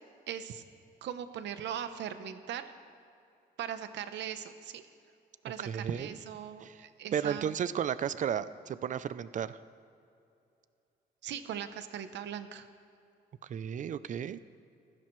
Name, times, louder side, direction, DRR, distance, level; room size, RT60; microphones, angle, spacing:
voice 1, 0.3-0.6 1.0-2.7 3.6-4.8 5.4-7.5 11.2-12.7, right 9 dB, 85° right, 10 dB, 0.8 m, -39 dB
voice 2, 5.7-6.1 6.6-6.8 7.1-9.6 13.5-14.4, right 8 dB, 45° right, 15 dB, 0.5 m, -33 dB
19.0 x 15.0 x 3.2 m, 2.6 s
cardioid pair, 130°, 18 cm